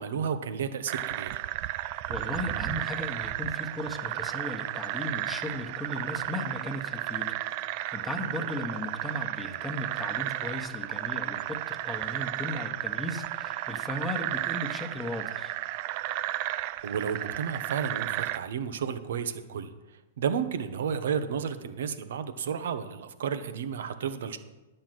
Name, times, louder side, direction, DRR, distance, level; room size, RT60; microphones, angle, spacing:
voice 1, 0.0-1.4 8.4-8.5 16.8-19.7 20.2-24.4, right 7 dB, 70° right, 10 dB, 1.1 m, -32 dB
sound 1, 0.9-18.4, right 14 dB, 45° right, 0.4 m, -33 dB
voice 2, 2.1-7.4 7.6-15.5, left 1 dB, 5° left, 2 dB, 1.4 m, -36 dB
10.5 x 6.7 x 7.8 m, 1.1 s
hypercardioid pair, 130°, 0 cm